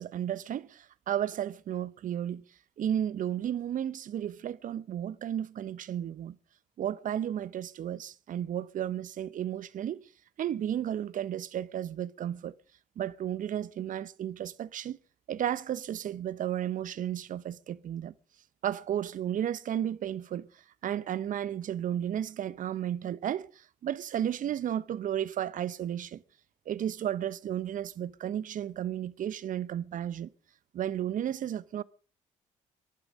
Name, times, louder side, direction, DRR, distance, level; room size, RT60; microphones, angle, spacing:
voice 1, 0.0-2.4 2.8-6.4 6.8-10.1 10.4-12.5 13.0-15.0 15.3-18.1 18.6-20.5 20.8-26.2 26.7-30.3 30.7-31.8, right 10 dB, 55° right, 0.9 m, -33 dB
23.0 x 11.5 x 5.2 m
hypercardioid pair, 50°, 16 cm